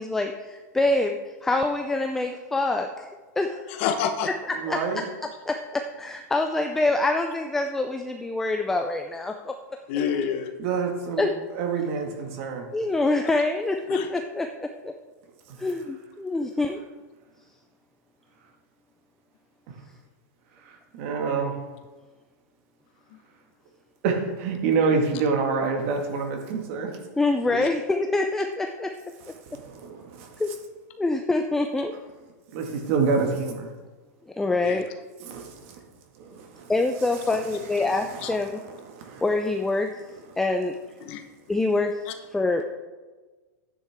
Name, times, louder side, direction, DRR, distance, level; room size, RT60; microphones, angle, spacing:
voice 1, 0.0-3.1 3.4-3.7 4.2-4.3 4.7-4.8 5.5-9.5 11.2-11.3 12.7-14.5 14.8-14.9 15.6-16.8 27.2-28.9 30.4-30.5 31.0-31.9 34.4-34.9 36.7-38.6 39.2-39.9 40.4-40.7 41.5-42.0 42.3-42.6, left 2 dB, 5° left, 4 dB, 0.4 m, -25 dB
voice 2, 3.8-4.3 9.9-10.5 13.9-14.1 27.5-27.7 34.6-34.8 38.2-38.3 41.0-41.2 42.1-42.2, left 7 dB, 45° left, 5 dB, 1.0 m, -27 dB
voice 3, 4.5-5.0 10.6-12.7 15.5-15.7 19.7-19.8 20.5-21.6 24.0-27.0 29.4-30.4 32.5-33.7 35.2-35.8 36.1-36.7 37.0-37.2 37.7-39.2, right 5 dB, 45° right, 2 dB, 1.9 m, -28 dB
11.5 x 9.7 x 3.6 m, 1.3 s
supercardioid pair, 165°, 9 cm